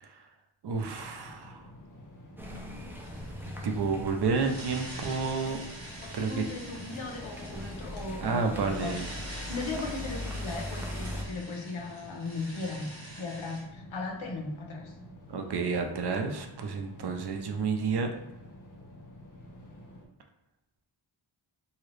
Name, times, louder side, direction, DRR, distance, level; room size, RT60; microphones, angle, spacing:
voice 1, 0.6-1.7 3.6-5.6 6.1-6.4 8.2-9.0 15.3-18.1, right 5 dB, 55° right, 4 dB, 0.5 m, -30 dB
sound 1, 0.7-20.1, left 1 dB, 40° left, 0.8 m, -50 dB
sound 2, 2.4-11.2, left 1 dB, 5° right, 0.4 m, -41 dB
sound 3, 3.0-3.5 4.3-13.6, right 1 dB, 30° right, 1.1 m, -46 dB
voice 2, 6.0-12.9 13.2-14.9, left 3 dB, 85° left, 1 dB, 0.8 m, -37 dB
2.9 x 2.8 x 3.2 m, 0.88 s
wide cardioid pair, 95°, 47 cm